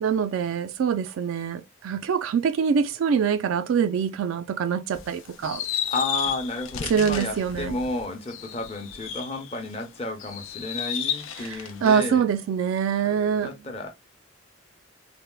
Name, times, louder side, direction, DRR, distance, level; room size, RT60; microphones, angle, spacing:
voice 1, 0.0-5.7 6.9-7.8 11.4-13.5, right 7 dB, 85° right, 0.3 m, -24 dB
sound 1, 4.9-9.7 10.2-11.9, left 9 dB, 80° left, 0.5 m, -33 dB
voice 2, 5.9-12.2 13.4-13.9, left 2 dB, 30° left, 0.6 m, -32 dB
3.4 x 2.1 x 2.2 m
head